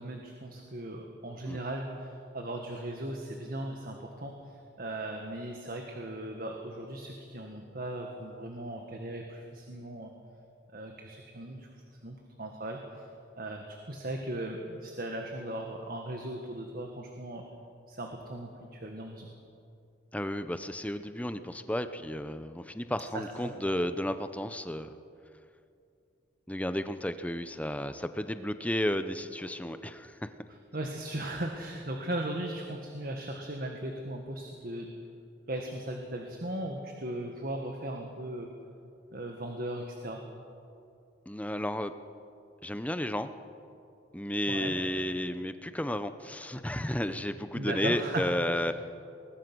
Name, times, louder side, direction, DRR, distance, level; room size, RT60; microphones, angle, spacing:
voice 1, 0.0-10.1 10.7-11.7 12.0-13.1 13.4-17.4 17.9-19.3 23.1-23.5 30.7-34.9 35.5-38.5 39.1-40.2 44.5-44.7 47.5-48.6, right 1 dB, 50° right, 2 dB, 1.7 m, -37 dB
voice 2, 20.1-24.9 26.5-30.3 41.3-41.9 42.6-43.3 44.1-48.7, left 1 dB, 5° left, 10 dB, 0.7 m, -32 dB
20.5 x 20.5 x 6.2 m, 2.5 s
head